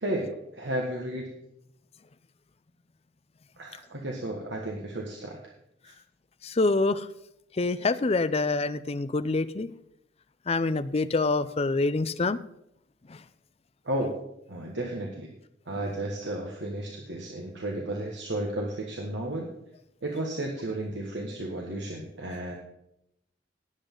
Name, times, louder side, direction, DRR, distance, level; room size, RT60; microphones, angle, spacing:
voice 1, 0.0-1.3 3.6-5.4 5.8-5.9 13.8-14.1 14.5-15.3 15.7-19.5 20.0-22.5, right 1 dB, 70° right, 1.7 m, -33 dB
voice 2, 6.4-7.1 7.5-9.7 10.5-12.4 13.1-13.2, left 3 dB, 35° left, 0.5 m, -26 dB
18.0 x 8.1 x 3.9 m
head